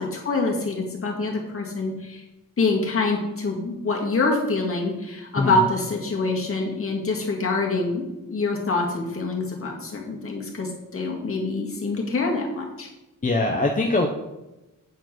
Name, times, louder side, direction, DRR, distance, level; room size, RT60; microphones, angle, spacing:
voice 1, 0.0-2.2 2.6-8.0 8.3-12.9, left 3 dB, 40° left, -1 dB, 2.0 m, -25 dB
voice 2, 13.2-14.1, left 2 dB, 25° left, 1 dB, 0.7 m, -22 dB
8.3 x 4.6 x 6.0 m, 1.0 s
wide cardioid pair, 140°, 33 cm